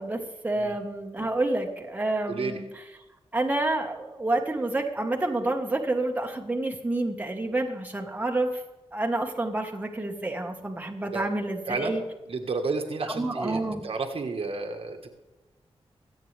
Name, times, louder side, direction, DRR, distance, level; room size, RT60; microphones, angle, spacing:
voice 1, 0.0-2.8 3.3-8.5 8.9-12.0 13.0-13.8, right 2 dB, 15° right, 1 dB, 1.5 m, -29 dB
voice 2, 2.3-2.6 11.1-11.3 11.7-12.0 12.3-15.1, right 3 dB, 65° right, 4 dB, 1.6 m, -31 dB
24.5 x 8.8 x 3.4 m, 1.1 s
wide cardioid pair, 125°, 11 cm